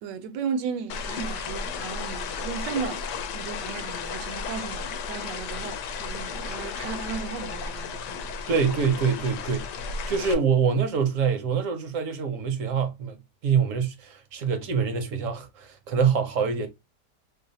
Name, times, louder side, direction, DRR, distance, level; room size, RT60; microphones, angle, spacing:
voice 1, 0.0-3.1 3.3-8.3, right 6 dB, 80° right, 1.2 m, -35 dB
sound 1, 0.9-10.3, left 5 dB, 75° left, 1.2 m, -34 dB
voice 2, 8.5-9.7 10.1-13.2 13.4-16.7, right 6 dB, 60° right, 0.9 m, -25 dB
3.1 x 2.1 x 3.9 m
omnidirectional pair, 1.9 m